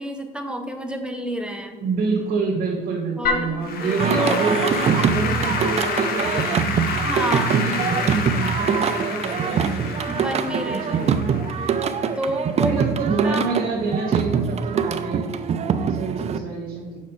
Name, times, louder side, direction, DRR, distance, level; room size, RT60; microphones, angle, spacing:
voice 1, 0.0-1.8 3.2-3.5 3.8-4.4 7.0-7.5 10.1-11.1 11.6-11.8 12.2-12.9 13.2-13.4, right 1 dB, 5° right, 4 dB, 0.9 m, -29 dB
voice 2, 1.8-6.7 7.3-11.5 12.6-17.0, right 4 dB, 60° right, -5 dB, 1.7 m, -28 dB
Applause / Keyboard (musical), 3.2-12.6, left 5 dB, 65° left, 1.1 m, -29 dB
Singing, 4.0-16.4, right 6 dB, 40° right, 0.5 m, -23 dB
7.3 x 5.9 x 4.0 m, 1.4 s
cardioid pair, 110°, 17 cm